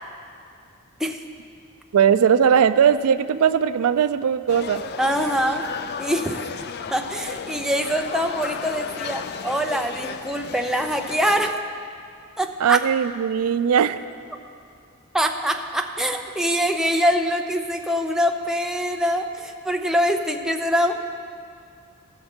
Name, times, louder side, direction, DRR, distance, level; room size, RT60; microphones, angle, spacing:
voice 1, 1.9-4.8 12.6-14.0, right 8 dB, 85° right, 13 dB, 0.4 m, -19 dB
sound 1, 4.5-11.5, left 6 dB, 50° left, 0.4 m, -34 dB
voice 2, 5.0-5.6 6.0-6.4 6.9-11.6 12.4-12.8 15.1-20.9, equal, ahead, 3 dB, 0.5 m, -24 dB
16.0 x 6.5 x 4.4 m, 2.4 s
head